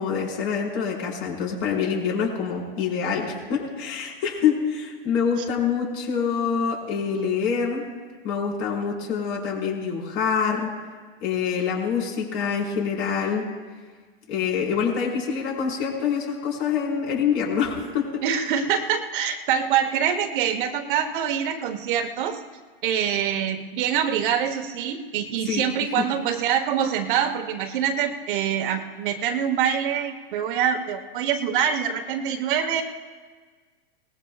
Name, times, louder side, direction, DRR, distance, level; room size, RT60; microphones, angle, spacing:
voice 1, 0.0-7.8 8.2-10.7 11.2-13.4 14.3-18.2 25.4-25.6 26.0-26.1, left 6 dB, 40° left, -2 dB, 4.9 m, -26 dB
voice 2, 18.2-22.4 22.8-32.8, right 8 dB, 55° right, 6 dB, 1.3 m, -25 dB
21.5 x 19.5 x 2.4 m, 1.5 s
hypercardioid pair, 135°, 30 cm